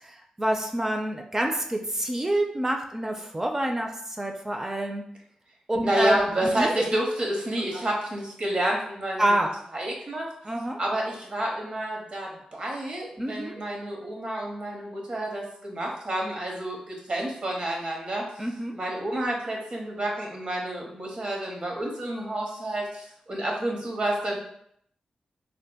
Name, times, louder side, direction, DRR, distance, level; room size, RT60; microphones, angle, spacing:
voice 1, 0.0-5.0 5.7-6.7 7.7-7.8 9.2-9.5 10.4-10.8 13.2-13.6 18.4-18.8, right 1 dB, 20° right, 2 dB, 0.4 m, -27 dB
voice 2, 5.8-9.4 9.7-10.3 10.8-18.2 18.7-24.4, right 1 dB, 50° right, -1 dB, 0.9 m, -29 dB
3.6 x 2.6 x 2.2 m, 0.70 s
cardioid pair, 75°, 2 cm